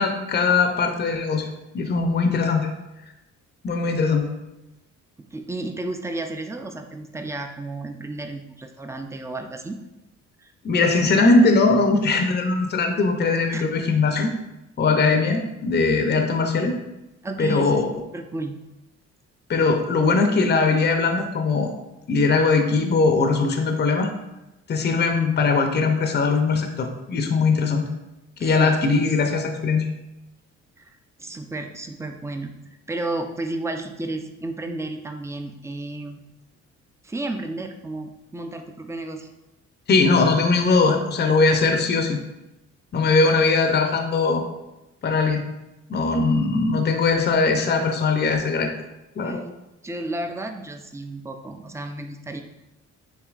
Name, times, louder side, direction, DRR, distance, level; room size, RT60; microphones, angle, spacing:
voice 1, 0.0-1.5 1.7-2.7 3.6-4.3 10.6-14.3 14.8-16.7 17.4-17.9 19.5-21.7 22.1-24.1 24.7-27.9 28.4-29.9 39.9-42.2 42.9-44.4 45.0-45.4 45.9-48.7 49.2-49.4, left 4 dB, 35° left, 4 dB, 0.6 m, -20 dB
voice 2, 5.3-9.8 10.4-10.5 13.5-13.6 17.2-17.8 18.1-18.6 28.4-28.8 30.8-32.5 32.9-36.2 37.0-39.3 49.2-49.5 49.8-52.4, right 2 dB, 10° right, 5 dB, 0.4 m, -32 dB
6.8 x 2.8 x 2.4 m, 0.97 s
cardioid pair, 90°, 30 cm